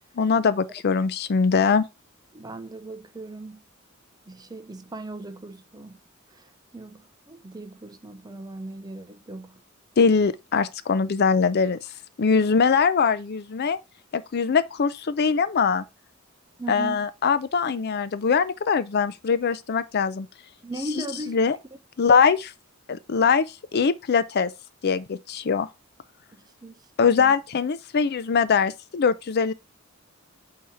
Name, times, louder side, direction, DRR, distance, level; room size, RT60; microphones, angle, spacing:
voice 1, 0.2-1.8 10.0-11.8 12.2-13.8 14.1-15.9 16.7-20.3 21.3-21.6 22.0-22.5 22.9-23.5 23.7-24.5 24.8-25.7 27.0-29.5, left 5 dB, 50° left, 0.5 m, -22 dB
voice 2, 2.3-3.6 4.3-6.0 6.3-6.5 6.7-7.0 7.3-9.6 16.6-17.1 20.6-21.4 26.6-27.3, right 2 dB, 20° right, 0.5 m, -38 dB
8.5 x 2.9 x 4.8 m
head